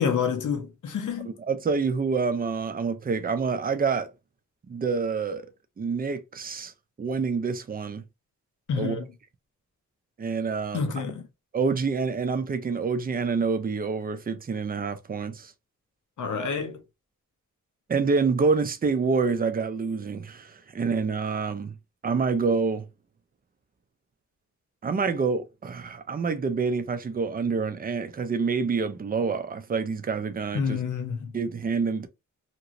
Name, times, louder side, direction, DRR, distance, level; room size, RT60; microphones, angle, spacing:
voice 1, 0.0-1.3 8.7-9.1 10.7-11.3 16.2-16.8 30.5-31.3, left 6 dB, 90° left, 0.7 m, -28 dB
voice 2, 1.5-4.1 4.7-5.5 5.8-6.7 7.0-8.0 8.8-9.0 10.2-10.8 11.5-15.5 17.9-21.7 22.0-22.8 24.8-30.8 31.3-32.1, right 5 dB, 30° right, 0.4 m, -27 dB
2.9 x 2.9 x 2.5 m
wide cardioid pair, 160°, 30 cm